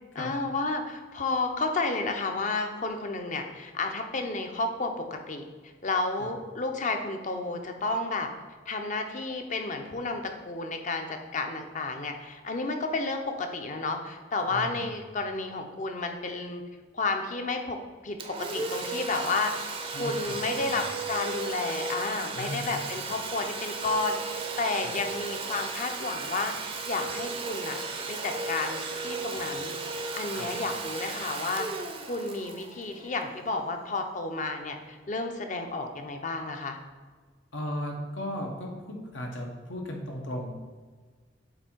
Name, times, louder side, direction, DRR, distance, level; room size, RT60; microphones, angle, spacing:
voice 1, 0.1-5.4 5.8-8.3 8.7-16.6 16.9-19.5 19.9-27.8 28.1-29.7 30.1-31.7 32.1-36.8, left 3 dB, 40° left, 5 dB, 0.6 m, -31 dB
voice 2, 14.5-14.9 19.9-20.9 22.3-22.8 24.8-24.9 30.3-30.5 37.5-40.5, left 1 dB, 90° left, 1 dB, 1.1 m, -36 dB
Domestic sounds home sounds, 18.2-33.7, right 3 dB, 30° right, 0.5 m, -35 dB
7.8 x 2.7 x 4.5 m, 1.4 s
head